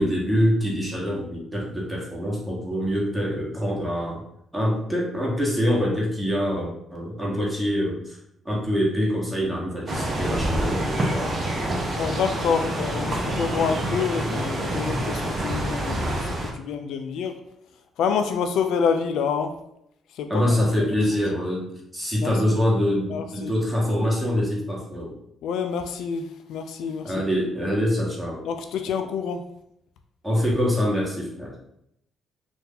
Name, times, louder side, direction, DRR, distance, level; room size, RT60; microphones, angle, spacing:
voice 1, 0.0-4.2 4.5-8.2 8.4-11.3 14.9-15.0 20.3-25.2 27.0-28.4 30.2-31.5, equal, 10° right, -4 dB, 1.2 m, -25 dB
sound 1, 9.9-16.5, right 1 dB, 40° right, 0.7 m, -27 dB
voice 2, 12.0-17.3 18.0-19.5 20.1-20.9 22.2-22.6 23.1-23.5 25.4-27.1 28.4-29.4, left 6 dB, 80° left, 6 dB, 0.3 m, -27 dB
2.7 x 2.5 x 3.7 m, 0.76 s
cardioid pair, 90°, 0 cm